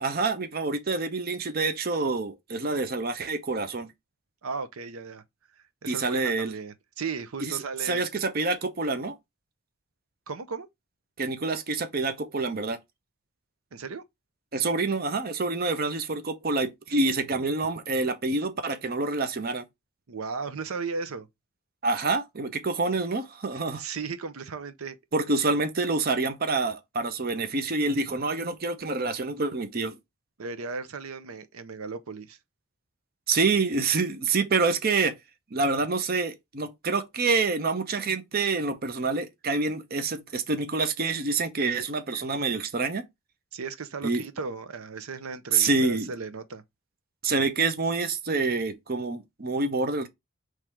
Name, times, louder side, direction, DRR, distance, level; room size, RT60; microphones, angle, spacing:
voice 1, 0.0-3.9 5.9-6.5 7.4-9.1 11.2-12.8 14.5-19.7 21.8-23.8 25.1-30.0 33.3-35.1 35.5-43.0 44.0-44.2 45.5-46.1 47.2-50.1, right 3 dB, 45° right, 0.7 m, -27 dB
voice 2, 4.4-5.2 5.6-8.1 10.3-10.7 13.7-14.0 20.1-21.3 23.5-25.0 30.4-32.4 43.5-46.6, right 4 dB, 85° right, 0.7 m, -36 dB
3.7 x 3.2 x 4.4 m
head